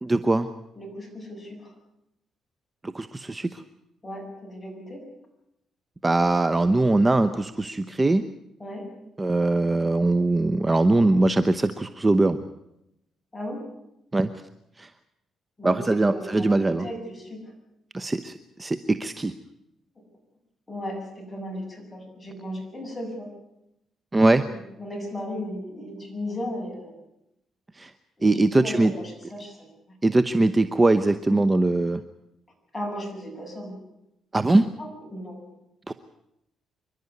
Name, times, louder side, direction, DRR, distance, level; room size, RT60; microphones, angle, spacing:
voice 1, 0.0-0.5 2.8-3.6 6.0-8.2 9.2-12.4 14.1-14.3 14.8-14.9 15.6-16.9 17.9-19.3 24.1-24.5 27.8-27.9 28.2-28.9 30.0-32.0 34.3-34.7 35.9-36.0, right 2 dB, 20° right, 12 dB, 0.9 m, -21 dB
voice 2, 0.8-1.7 4.0-5.0 8.6-8.9 13.3-13.6 15.6-17.5 20.7-23.3 24.5-26.9 28.2-29.7 32.7-33.8 34.8-35.4, left 1 dB, 15° left, 2 dB, 7.4 m, -36 dB
27.0 x 12.0 x 9.6 m, 0.85 s
cardioid pair, 90°, 0 cm